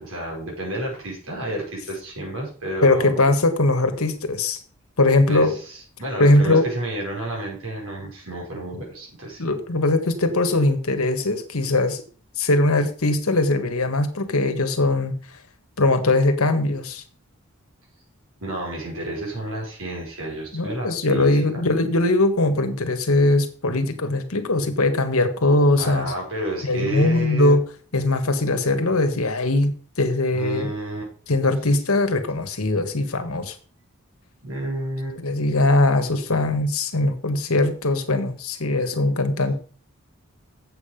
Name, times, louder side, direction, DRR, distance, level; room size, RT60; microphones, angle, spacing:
voice 1, 0.0-3.2 5.3-9.4 18.4-21.5 25.8-27.6 30.3-31.0 34.4-35.2 38.9-39.0, right 1 dB, 70° right, -2 dB, 5.4 m, -31 dB
voice 2, 2.8-4.6 5.0-5.6 6.2-6.7 9.4-12.0 12.4-15.1 15.8-17.0 20.5-26.1 26.6-27.6 27.9-30.7 31.3-33.5 35.2-39.5, left 2 dB, 80° left, 8 dB, 1.4 m, -20 dB
7.8 x 7.6 x 5.2 m, 0.41 s
head